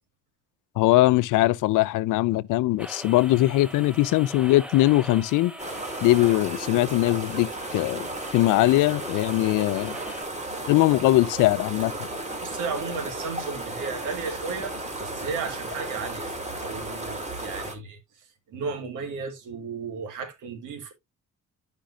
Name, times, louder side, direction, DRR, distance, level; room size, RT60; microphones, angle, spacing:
voice 1, 0.8-5.5 6.0-8.1 8.3-10.0 10.7-11.9, left 17 dB, 90° left, 0.5 m, -21 dB
sound 1, 2.8-10.2, equal, 5° right, 1.1 m, -42 dB
sound 2, 5.6-17.7, right 2 dB, 25° right, 2.4 m, -34 dB
voice 2, 12.4-16.3 16.6-18.0 18.5-20.9, right 5 dB, 85° right, 2.0 m, -34 dB
11.5 x 5.3 x 2.4 m
cardioid pair, 90°, 30 cm